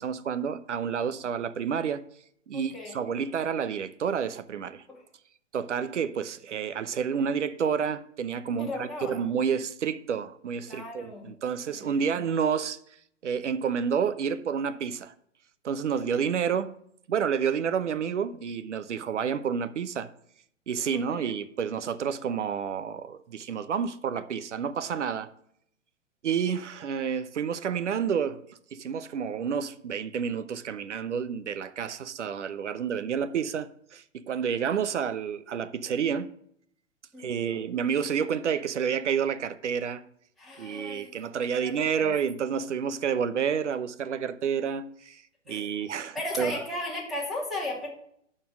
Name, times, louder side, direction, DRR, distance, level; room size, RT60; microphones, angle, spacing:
voice 1, 0.0-2.0 2.5-4.8 5.5-12.8 13.2-15.1 15.6-16.7 17.1-20.1 20.7-25.3 26.2-28.4 28.7-36.3 37.2-40.0 40.6-45.2 45.5-46.6, right 7 dB, 65° right, 0.9 m, -29 dB
voice 2, 2.5-3.0 4.9-5.0 8.6-9.2 10.7-11.3 11.7-11.8 15.9-16.2 20.9-21.2 37.1-37.6 40.4-41.2 41.5-42.1 45.5-45.7 46.1-47.9, left 1 dB, ahead, 2.5 m, -36 dB
12.0 x 4.3 x 6.2 m
figure-of-eight pair, 120°, 38 cm